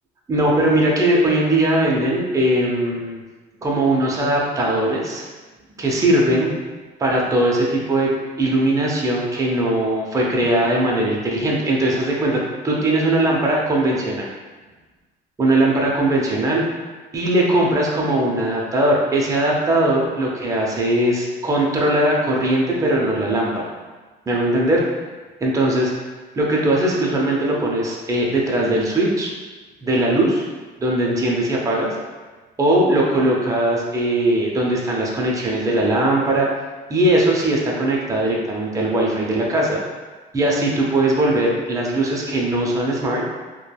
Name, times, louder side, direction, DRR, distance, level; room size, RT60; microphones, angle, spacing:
voice 1, 0.3-3.2 3.6-5.2 5.8-6.6 7.0-8.1 8.4-14.2 15.4-16.6 17.1-23.5 24.3-24.8 25.4-25.9 26.3-29.3 29.8-30.4 30.8-32.0 32.6-36.5 36.9-39.8 40.3-43.2, right 1 dB, 20° right, -3 dB, 0.5 m, -19 dB
3.1 x 2.2 x 2.3 m, 1.3 s
cardioid pair, 110°, 17 cm